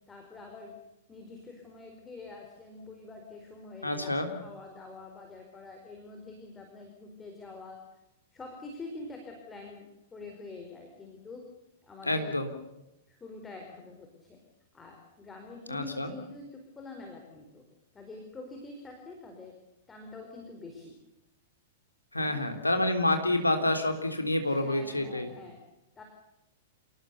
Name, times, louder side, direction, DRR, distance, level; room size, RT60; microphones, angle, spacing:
voice 1, 0.1-0.8 1.1-7.8 8.3-11.4 11.8-12.5 13.1-14.4 14.7-17.6 17.9-19.5 19.9-20.9 22.1-22.5 24.4-25.6 26.0-26.1, left 3 dB, 15° left, 2 dB, 4.6 m, -46 dB
voice 2, 3.8-4.3 12.0-12.5 15.7-16.1 22.1-25.3, left 1 dB, 85° left, 6 dB, 3.6 m, -28 dB
28.0 x 19.0 x 6.9 m, 0.93 s
figure-of-eight pair, 100°, 0 cm